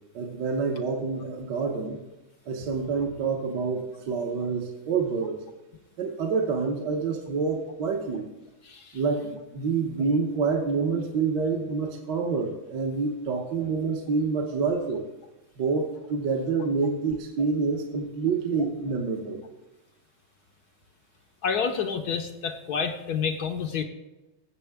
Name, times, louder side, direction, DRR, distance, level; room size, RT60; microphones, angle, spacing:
voice 1, 0.1-2.0 2.5-5.4 6.0-8.3 8.9-15.0 15.6-19.4, right 4 dB, 60° right, 1 dB, 1.6 m, -27 dB
voice 2, 8.6-9.0 14.4-14.6 21.4-23.8, left 6 dB, 65° left, 5 dB, 1.1 m, -29 dB
17.0 x 7.4 x 3.5 m, 1.1 s
omnidirectional pair, 2.2 m